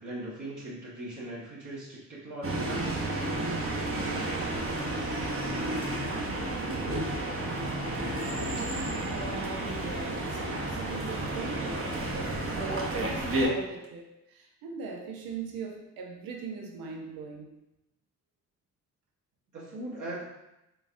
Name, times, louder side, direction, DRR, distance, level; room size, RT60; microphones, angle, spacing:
voice 1, 0.0-3.2 19.5-20.2, right 1 dB, 60° right, -9 dB, 1.5 m, -39 dB
sound 1, 2.4-13.5, right 1 dB, 40° right, 1.0 m, -31 dB
voice 2, 6.2-7.2 8.5-17.5, right 4 dB, 85° right, 1 dB, 0.7 m, -40 dB
3.8 x 3.6 x 2.5 m, 0.91 s
supercardioid pair, 60°, 34 cm